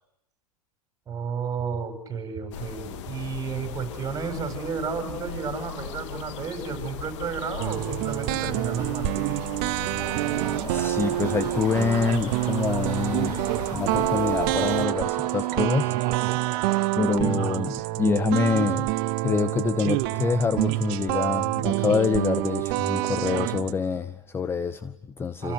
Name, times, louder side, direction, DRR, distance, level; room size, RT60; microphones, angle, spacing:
voice 1, 1.1-9.3 17.2-17.4 25.4-25.5, right 6 dB, 15° right, 7 dB, 7.9 m, -32 dB
sound 1, 2.5-14.9, left 10 dB, 50° left, 2.0 m, -38 dB
sound 2, 7.6-23.7, right 17 dB, 40° right, 1.3 m, -27 dB
sound 3, 10.0-16.9, right 7 dB, 80° right, 1.8 m, -38 dB
voice 2, 10.6-13.4 13.7-16.0 17.0-18.9 19.2-25.5, left 5 dB, 10° left, 13 dB, 1.0 m, -26 dB
29.5 x 27.5 x 6.9 m, 0.82 s
hypercardioid pair, 120°, 20 cm